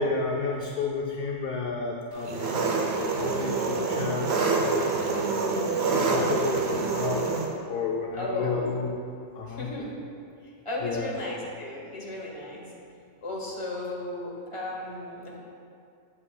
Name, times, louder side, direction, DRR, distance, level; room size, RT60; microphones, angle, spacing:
voice 1, 0.0-8.9 9.3-9.7 10.8-11.1, left 4 dB, 65° left, 0 dB, 0.6 m, -32 dB
Engine, 2.2-7.5, right 4 dB, 60° right, 0.9 m, -26 dB
voice 2, 8.1-8.7 9.5-9.9 10.6-12.7 13.2-15.4, left 2 dB, 25° left, -3 dB, 1.1 m, -35 dB
8.7 x 7.1 x 2.2 m, 2.4 s
omnidirectional pair, 1.3 m